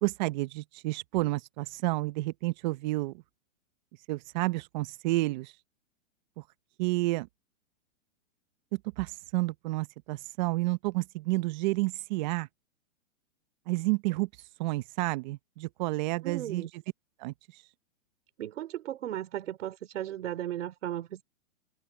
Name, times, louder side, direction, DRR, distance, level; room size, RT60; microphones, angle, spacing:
voice 1, 0.0-3.1 4.1-5.5 6.4-6.5 6.8-7.3 8.7-12.5 13.7-14.3 14.6-16.7 17.2-17.3, right 20 dB, 35° right, 1.1 m, -30 dB
voice 2, 16.2-16.7 18.4-21.2, right 12 dB, 65° right, 4.2 m, -35 dB
open air
hypercardioid pair, 150°, 39 cm